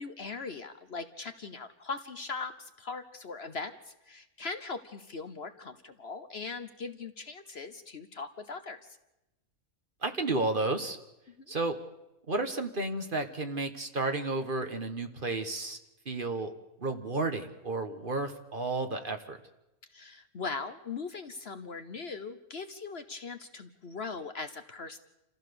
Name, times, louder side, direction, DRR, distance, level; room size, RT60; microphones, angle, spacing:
voice 1, 0.0-9.0 11.4-11.6 19.9-25.0, left 4 dB, 50° left, 9 dB, 1.1 m, -40 dB
voice 2, 10.0-11.0 11.5-11.7 12.3-15.8 16.0-16.5 16.8-19.4, right 2 dB, 40° right, 7 dB, 1.5 m, -32 dB
28.0 x 15.0 x 6.9 m, 0.95 s
omnidirectional pair, 1.5 m